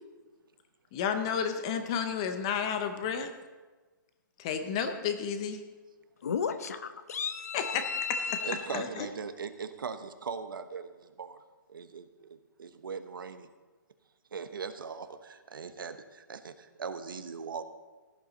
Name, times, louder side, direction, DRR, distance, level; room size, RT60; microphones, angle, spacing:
voice 1, 0.9-3.3 4.4-5.6 7.5-9.1, left 7 dB, 15° left, 8 dB, 0.5 m, -32 dB
voice 2, 6.2-8.7, left 6 dB, 50° left, 11 dB, 0.8 m, -34 dB
voice 3, 8.4-11.4 11.7-13.5 14.3-17.6, right 5 dB, 90° right, 10 dB, 1.1 m, -40 dB
16.5 x 11.0 x 4.0 m, 1.3 s
hypercardioid pair, 180°, 11 cm